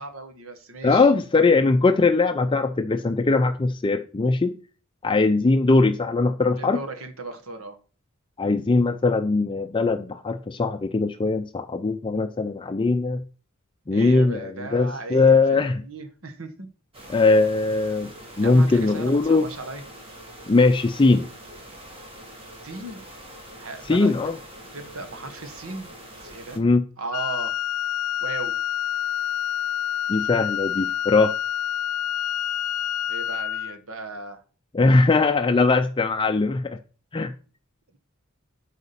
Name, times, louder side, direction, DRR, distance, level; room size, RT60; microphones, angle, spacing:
voice 1, 0.0-1.1 6.6-7.8 13.9-16.7 18.4-19.8 22.6-23.0 23.6-24.1 24.7-25.9 26.2-26.6 27.0-27.6 28.2-28.5 33.1-34.4, right 3 dB, 65° right, 8 dB, 1.5 m, -36 dB
voice 2, 0.8-4.6 5.0-6.8 8.4-13.2 13.9-15.8 17.1-18.1 18.4-19.5 20.5-21.3 23.9-24.4 26.6-26.8 30.1-31.3 34.7-36.8 37.1-37.3, left 3 dB, 25° left, 8 dB, 0.4 m, -20 dB
sound 1, 16.9-26.6, right 1 dB, 25° right, 2.3 m, -44 dB
Wind instrument woodwind instrument, 27.1-33.8, left 10 dB, 85° left, 0.4 m, -27 dB
8.3 x 4.9 x 7.0 m, 0.38 s
head